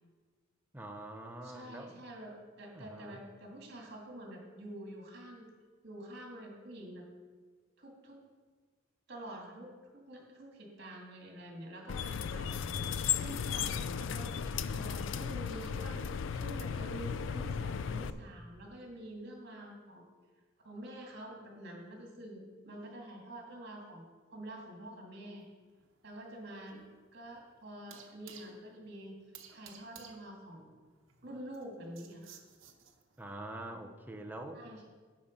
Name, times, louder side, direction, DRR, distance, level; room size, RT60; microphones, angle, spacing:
voice 1, 0.7-2.0 2.7-3.2 33.2-34.6, right 1 dB, 10° right, 4 dB, 0.6 m, -45 dB
voice 2, 1.4-5.5 5.8-7.0 7.8-8.2 9.1-14.3 14.7-16.1 16.3-20.1 20.6-24.0 24.3-25.5 26.0-26.8 27.1-29.1 29.5-30.7 31.2-32.4 34.5-34.8, right 1 dB, 55° right, 0 dB, 2.1 m, -47 dB
sound 1, 11.9-18.1, left 7 dB, 70° left, 0.4 m, -35 dB
sound 2, 25.4-33.3, right 7 dB, 85° right, 1.0 m, -57 dB
9.4 x 5.8 x 5.2 m, 1.4 s
head